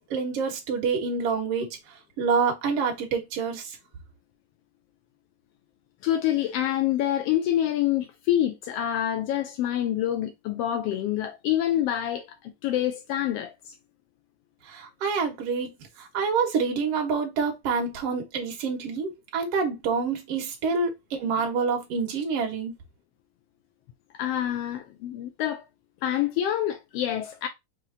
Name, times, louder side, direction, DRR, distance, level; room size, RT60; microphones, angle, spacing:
voice 1, 0.1-1.8 2.2-3.8 14.7-22.7, right 5 dB, 60° right, 2.0 m, -27 dB
voice 2, 6.0-13.5 24.2-25.6 26.0-27.5, left 11 dB, 80° left, 1.4 m, -26 dB
5.7 x 3.2 x 2.7 m
omnidirectional pair, 3.3 m